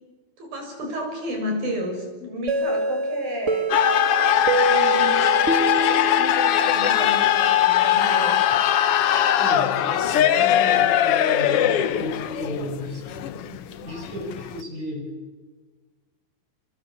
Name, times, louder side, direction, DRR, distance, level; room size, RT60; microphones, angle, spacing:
voice 1, 0.4-3.7 4.3-8.4, equal, 85° right, 2 dB, 8.9 m, -32 dB
sound 1, 2.5-7.2, right 2 dB, 35° right, 1.1 m, -26 dB
sound 2, 3.7-14.6, left 10 dB, 90° left, 1.3 m, -20 dB
voice 2, 9.4-15.0, left 1 dB, 65° right, 1 dB, 9.3 m, -33 dB
27.5 x 24.0 x 8.7 m, 1.3 s
omnidirectional pair, 4.0 m